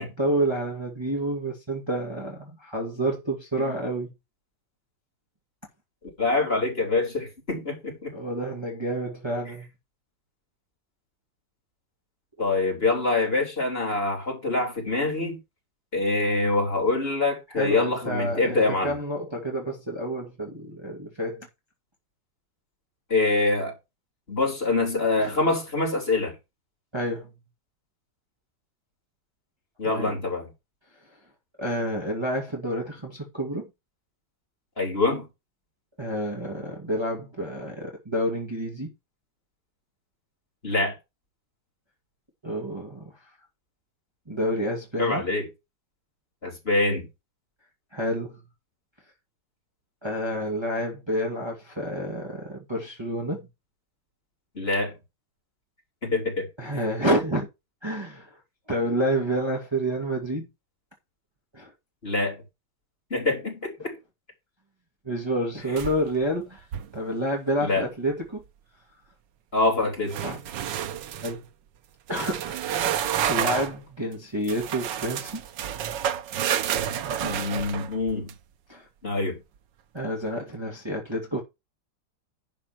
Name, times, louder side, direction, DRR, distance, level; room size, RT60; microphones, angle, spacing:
voice 1, 0.0-4.1 8.1-9.7 12.4-12.5 17.6-21.5 25.2-25.4 26.9-27.3 29.8-30.2 31.6-33.7 36.0-38.9 42.4-43.1 44.3-45.2 47.9-48.4 50.0-53.4 56.6-57.5 57.8-58.4 58.7-60.5 61.5-61.7 65.0-66.6 66.9-68.4 70.2-70.4 71.2-71.5 72.1-75.4 78.7-78.9 79.9-81.4, right 1 dB, 15° right, 2.3 m, -29 dB
voice 2, 6.2-8.1 12.4-15.4 15.9-18.9 23.1-23.7 24.3-26.3 29.8-30.4 34.8-35.3 40.6-41.0 45.0-45.5 46.4-47.1 54.6-54.9 56.0-56.5 62.0-62.4 63.1-64.0 65.7-65.8 67.6-67.8 69.5-70.2 77.2-78.3 79.0-79.4, left 3 dB, 30° left, 3.9 m, -25 dB
sound 1, 65.8-66.2 66.6-67.0 70.1-71.4 72.1-73.8 74.5-78.3, right 10 dB, 85° right, 1.5 m, -29 dB
11.0 x 4.3 x 6.0 m
omnidirectional pair, 1.9 m